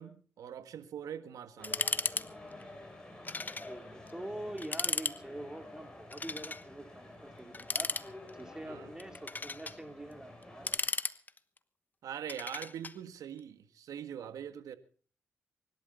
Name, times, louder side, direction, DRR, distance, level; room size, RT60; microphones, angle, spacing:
voice 1, 0.0-1.9 8.6-8.9 12.0-14.8, right 9 dB, 80° right, 10 dB, 1.7 m, -43 dB
sound 1, 1.6-2.3 2.5-2.6 3.2-3.7 4.1-4.2 4.6-5.2 6.1-6.6 7.5-8.4 9.0-9.8 10.4-11.6 12.3-12.9, left 3 dB, 30° left, 1.1 m, -35 dB
sound 2, 1.6-10.8, left 1 dB, 15° left, 7.2 m, -50 dB
voice 2, 3.7-7.9 8.3-10.7, right 1 dB, 10° right, 6 dB, 3.3 m, -45 dB
24.5 x 12.0 x 4.0 m, 0.42 s
supercardioid pair, 60°, 6 cm